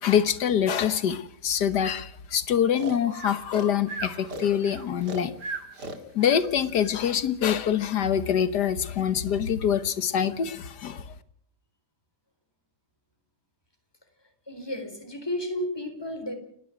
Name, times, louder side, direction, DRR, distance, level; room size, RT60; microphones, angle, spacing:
voice 1, 0.0-5.3 6.1-11.0, left 8 dB, 80° left, 13 dB, 1.8 m, -25 dB
Breathing, 2.8-6.5, right 3 dB, 85° right, 2.8 m, -36 dB
voice 2, 14.5-16.3, left 1 dB, 15° left, 5 dB, 4.1 m, -32 dB
29.5 x 11.0 x 9.0 m, 0.68 s
omnidirectional pair, 1.7 m